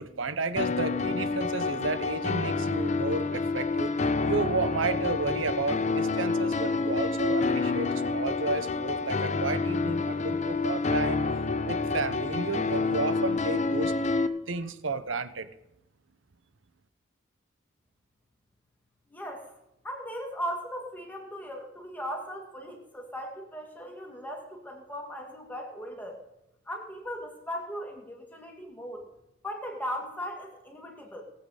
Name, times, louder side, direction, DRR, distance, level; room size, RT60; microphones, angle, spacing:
voice 1, 0.0-3.9 4.2-11.3 11.6-13.9 14.5-15.5, right 3 dB, 80° right, 12 dB, 0.9 m, -32 dB
sound 1, 0.6-14.3, left 3 dB, 35° left, 0.7 m, -28 dB
voice 2, 19.1-19.6 19.8-26.2 26.7-29.1 29.4-31.2, equal, 10° left, 1 dB, 2.1 m, -38 dB
19.0 x 7.9 x 5.0 m, 0.88 s
head